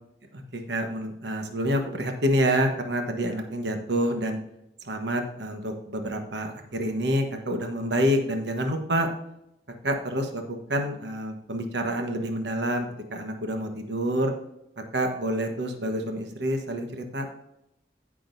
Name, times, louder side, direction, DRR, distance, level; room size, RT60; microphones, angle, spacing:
voice 1, 0.3-4.4 4.8-9.1 9.8-14.3 14.9-17.2, equal, 70° right, 4 dB, 1.3 m, -28 dB
15.0 x 6.2 x 2.7 m, 0.82 s
head